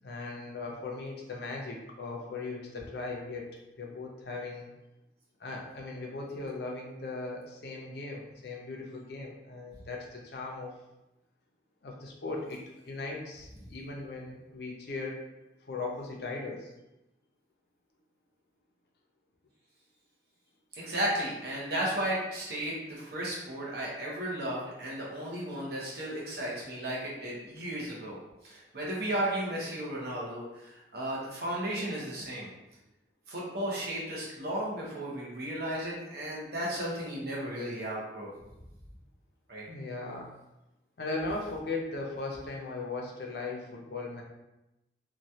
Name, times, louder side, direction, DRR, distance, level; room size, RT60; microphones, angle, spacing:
voice 1, 0.0-3.5 3.8-4.7 5.4-10.7 11.8-15.2 15.6-16.7 39.7-40.3 41.0-44.2, left 3 dB, 60° left, -1 dB, 0.5 m, -38 dB
voice 2, 20.7-28.2 28.4-32.5 33.3-38.3 39.5-39.6, right 1 dB, 60° right, -5 dB, 0.8 m, -34 dB
3.0 x 2.3 x 2.7 m, 0.95 s
head